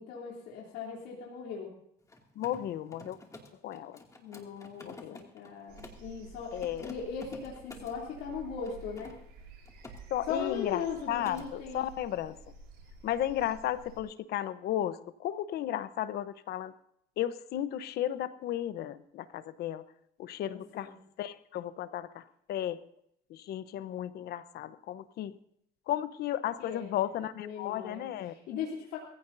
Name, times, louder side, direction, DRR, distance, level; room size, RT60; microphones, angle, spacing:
voice 1, 0.0-1.7 4.2-9.1 10.3-11.8 20.5-21.0 26.6-27.1 27.4-29.0, left 6 dB, 90° left, -3 dB, 3.1 m, -39 dB
Mechanisms, 2.0-6.1 6.5-8.0 8.6-10.0 10.3-10.6 10.9-11.5, left 2 dB, 20° left, 2.4 m, -50 dB
voice 2, 2.4-3.2 3.6-4.0 4.8-5.2 6.5-6.9 10.1-10.8 11.1-12.4 13.0-16.7 17.2-19.8 20.2-22.8 23.3-25.3 25.9-28.3, left 12 dB, 70° left, 13 dB, 0.9 m, -34 dB
sound 1, 5.7-14.0, right 4 dB, 75° right, 5.8 m, -51 dB
22.0 x 15.5 x 2.7 m, 0.73 s
cardioid pair, 110°, 17 cm